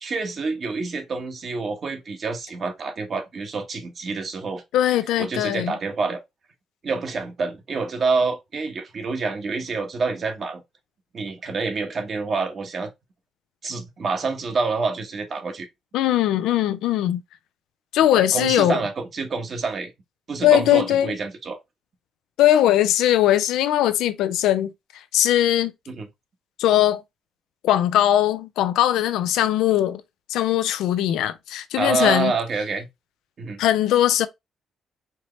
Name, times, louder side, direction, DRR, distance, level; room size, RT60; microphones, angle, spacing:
voice 1, 0.0-4.6 5.2-6.2 6.8-10.6 11.1-12.9 13.6-15.7 18.1-19.9 20.3-21.6 25.9-26.1 31.8-32.9 33.4-33.6, right 4 dB, 50° right, 1.3 m, -27 dB
voice 2, 4.7-5.7 15.9-17.2 17.9-18.8 20.4-21.1 22.4-24.7 25.1-25.7 26.6-27.0 27.6-30.0 30.3-32.3 33.6-34.3, left 12 dB, 90° left, 0.5 m, -20 dB
4.6 x 2.9 x 3.1 m
cardioid pair, 90°, 0 cm